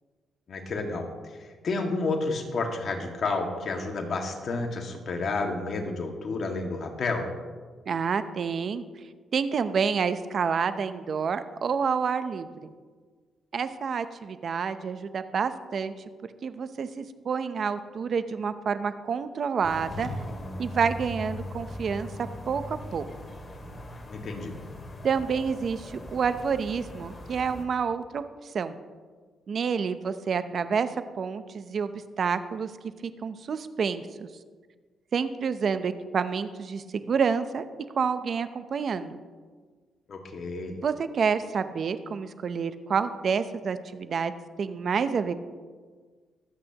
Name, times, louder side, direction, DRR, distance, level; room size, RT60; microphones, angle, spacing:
voice 1, 0.5-1.1 1.6-7.3 24.1-24.6 40.1-40.8, left 3 dB, 55° left, 2 dB, 1.9 m, -30 dB
voice 2, 7.9-8.8 9.3-12.7 13.5-15.9 16.4-20.1 20.6-22.1 22.5-23.0 25.0-28.7 29.5-30.9 31.2-31.9 32.2-32.7 33.0-34.3 35.1-37.7 38.0-39.2 40.8-44.3 44.6-45.3, right 6 dB, 55° right, 11 dB, 0.7 m, -28 dB
sound 1, 19.6-27.6, left 1 dB, 30° left, 2.4 m, -40 dB
23.5 x 8.6 x 3.0 m, 1.5 s
cardioid pair, 80°, 0 cm